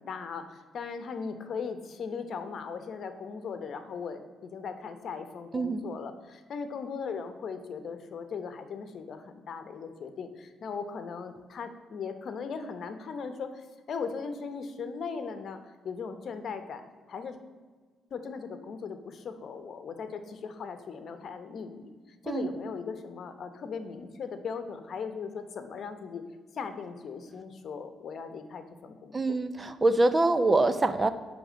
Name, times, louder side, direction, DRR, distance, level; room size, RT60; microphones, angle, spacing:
voice 1, 0.0-15.6 15.8-16.8 17.1-17.4 18.1-26.2 26.5-29.4, left 5 dB, 60° left, 9 dB, 0.9 m, -38 dB
voice 2, 5.5-5.9 22.3-22.5 29.1-31.1, right 2 dB, 25° right, 11 dB, 0.6 m, -25 dB
9.9 x 3.6 x 6.3 m, 1.5 s
cardioid pair, 90°, 0 cm